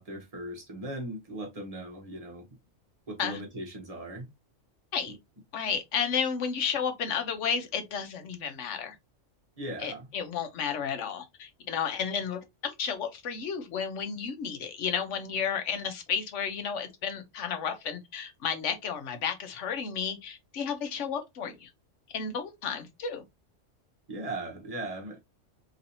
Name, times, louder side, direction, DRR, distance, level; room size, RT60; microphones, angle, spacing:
voice 1, 0.0-2.5 3.1-4.3 5.1-5.2 9.6-10.1 24.1-25.2, right 1 dB, 30° right, 1.0 m, -38 dB
voice 2, 5.5-8.9 9.8-21.7 22.1-23.2, left 7 dB, 75° left, 1.1 m, -32 dB
3.1 x 2.7 x 2.8 m
omnidirectional pair, 1.3 m